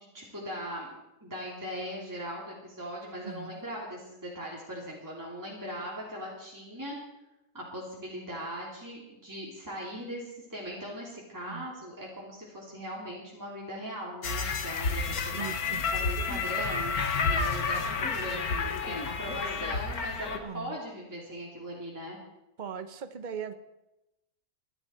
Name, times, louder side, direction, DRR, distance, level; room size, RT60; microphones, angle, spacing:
voice 1, 0.1-0.9 1.2-7.0 7.5-15.5 15.9-22.2, equal, 10° right, -5 dB, 3.0 m, -39 dB
voice 2, 3.2-3.6 11.5-11.7 15.3-15.8 16.6-16.7 17.7-18.0 20.4-20.8 22.6-23.5, right 7 dB, 35° right, 10 dB, 1.0 m, -39 dB
sound 1, 14.2-20.4, left 4 dB, 75° left, 1.8 m, -30 dB
25.0 x 11.0 x 4.4 m, 0.93 s
omnidirectional pair, 1.6 m